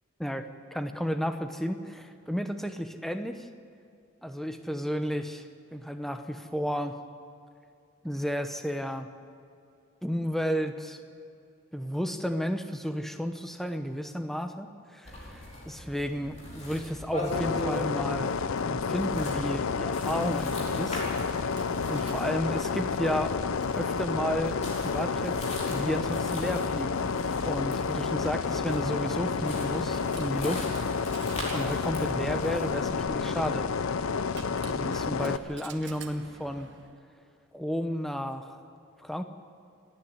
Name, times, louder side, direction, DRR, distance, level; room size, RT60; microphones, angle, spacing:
voice 1, 0.7-3.5 4.2-7.0 8.0-9.1 10.0-11.0 11.7-18.4 18.6-21.0 21.9-23.4 23.8-24.6 24.8-27.0 27.4-30.7 31.5-33.7 34.7-36.7 37.5-38.6 39.0-39.2, equal, ahead, 7 dB, 0.9 m, -32 dB
sound 1, 15.0-33.0, left 1 dB, 35° left, 5.0 m, -41 dB
sound 2, 17.3-35.4, left 5 dB, 85° left, 0.6 m, -30 dB
Coin (dropping), 20.3-37.0, right 3 dB, 60° right, 1.2 m, -49 dB
29.0 x 10.0 x 9.7 m, 2.5 s
head